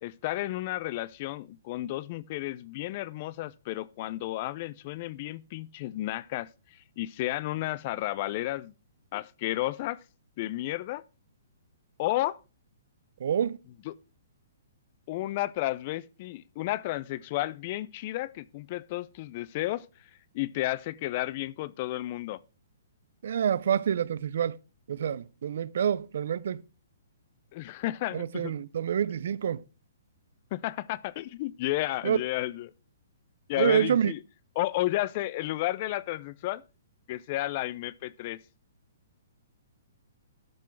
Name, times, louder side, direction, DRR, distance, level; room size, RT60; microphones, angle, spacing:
voice 1, 0.0-8.7 9.1-10.0 10.4-11.0 12.0-12.4 13.9-14.0 15.1-19.9 20.3-22.4 27.5-28.5 30.5-32.7 33.5-34.2 34.6-36.6 37.1-38.4, left 16 dB, 40° left, 0.5 m, -32 dB
voice 2, 13.2-13.6 23.2-24.6 24.9-26.6 28.1-29.6 32.0-32.2 33.6-34.1, right 8 dB, 65° right, 0.5 m, -27 dB
11.5 x 6.1 x 4.5 m
hypercardioid pair, 150°, 0 cm